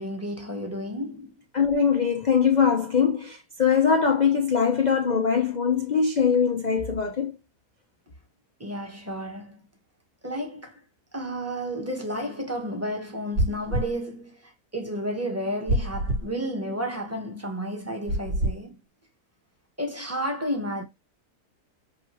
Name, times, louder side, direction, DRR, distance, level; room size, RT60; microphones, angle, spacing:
voice 1, 0.0-1.4 8.6-9.6 10.2-10.7 11.1-14.3 14.7-18.8 19.8-20.8, equal, 10° right, 0.9 m, -31 dB
voice 2, 1.5-7.3, left 6 dB, 65° left, 0.4 m, -22 dB
sound 1, 13.4-14.0 15.7-16.3 18.1-18.6, right 1 dB, 55° right, 2.8 m, -25 dB
5.3 x 2.6 x 2.9 m
omnidirectional pair, 1.8 m